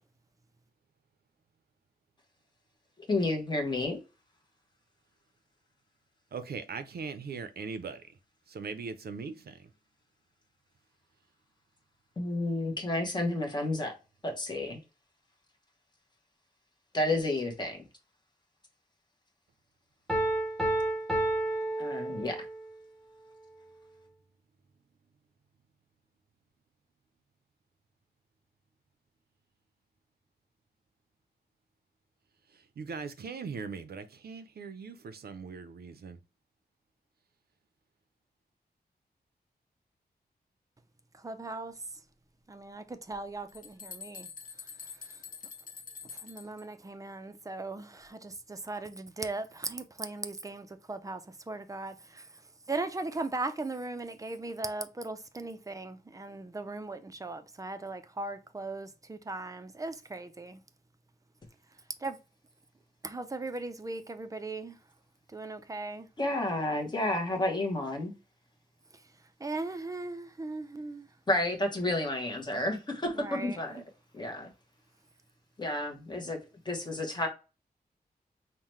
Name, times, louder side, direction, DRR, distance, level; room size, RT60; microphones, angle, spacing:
voice 1, 3.1-4.0 12.2-13.9 14.2-14.8 16.9-17.8 21.8-22.4 66.2-68.1 71.3-73.8 74.1-74.5 75.6-76.4 76.6-77.3, left 2 dB, 25° left, 0.9 m, -31 dB
voice 2, 6.3-8.0 8.5-9.5 32.8-36.2, right 5 dB, 75° right, 0.6 m, -40 dB
Piano, 20.1-22.7, right 1 dB, ahead, 0.9 m, -30 dB
voice 3, 41.2-41.7 42.5-44.3 46.2-51.2 51.5-52.3 52.7-60.6 62.0-62.2 63.0-64.8 65.3-66.1 69.4-71.1 73.1-73.6, right 2 dB, 20° right, 0.4 m, -38 dB
sound 1, 43.1-43.2 43.5-46.6, left 6 dB, 55° left, 0.7 m, -46 dB
5.6 x 2.2 x 3.1 m
wide cardioid pair, 175°, 17 cm